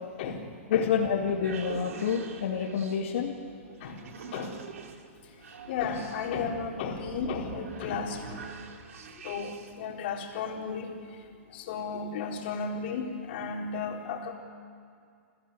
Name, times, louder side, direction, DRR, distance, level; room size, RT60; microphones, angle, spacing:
voice 1, 0.7-3.3, left 7 dB, 70° left, -2 dB, 2.7 m, -28 dB
sound 1, 1.0-9.9, right 5 dB, 85° right, 2.7 m, -45 dB
voice 2, 5.7-8.4 9.2-10.9 11.5-14.3, left 5 dB, 50° left, 1 dB, 4.0 m, -34 dB
28.5 x 15.0 x 8.2 m, 2.3 s
hypercardioid pair, 155°, 8 cm